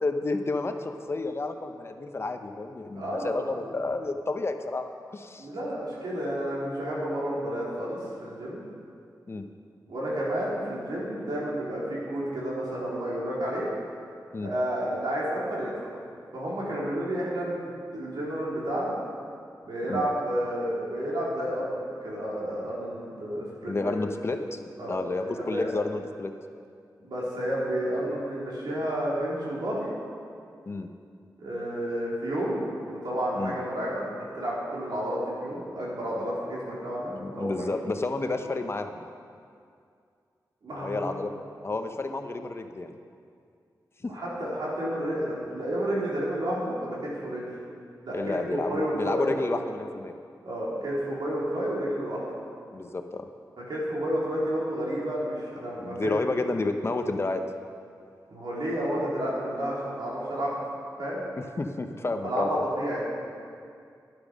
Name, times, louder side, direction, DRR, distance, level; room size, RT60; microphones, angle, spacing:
voice 1, 0.0-4.8 5.1-5.5 9.3-9.4 14.3-14.5 19.9-20.1 23.6-24.6 24.9-26.3 30.7-30.9 33.4-33.5 37.1-39.1 40.8-41.4 41.6-43.0 44.0-44.1 48.1-50.1 52.7-53.3 55.8-57.4 61.6-62.6, left 3 dB, 35° left, 6 dB, 0.8 m, -30 dB
voice 2, 2.9-3.5 5.4-8.6 9.9-13.7 14.4-16.0 16.3-19.0 19.6-24.0 24.8-25.7 27.0-29.9 31.4-37.8 40.6-41.1 44.1-47.5 48.0-49.3 50.4-52.2 53.7-56.2 58.3-60.5 61.0-61.2 62.2-63.0, right 1 dB, 80° right, -6 dB, 3.8 m, -31 dB
10.5 x 10.5 x 6.2 m, 2.3 s
wide cardioid pair, 105°, 7 cm